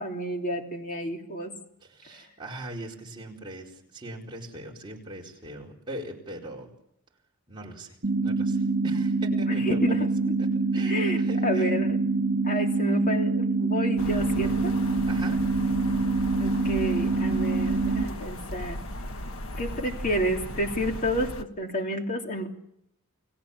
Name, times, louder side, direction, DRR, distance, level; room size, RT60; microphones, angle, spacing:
voice 1, 0.0-1.5 9.3-10.1 10.9-11.2 11.4-12.0 12.4-14.9 16.4-18.8 19.6-22.5, equal, 35° left, 2 dB, 2.9 m, -30 dB
voice 2, 1.8-6.7 7.5-8.0 8.2-10.0 10.4-10.5 10.7-11.7 15.1-15.4, right 1 dB, 20° right, -2 dB, 4.7 m, -40 dB
sound 1, 8.0-18.0, right 3 dB, 70° right, 1.6 m, -25 dB
sound 2, 14.0-21.4, left 1 dB, 65° left, 1.4 m, -36 dB
29.5 x 18.5 x 7.3 m, 0.77 s
head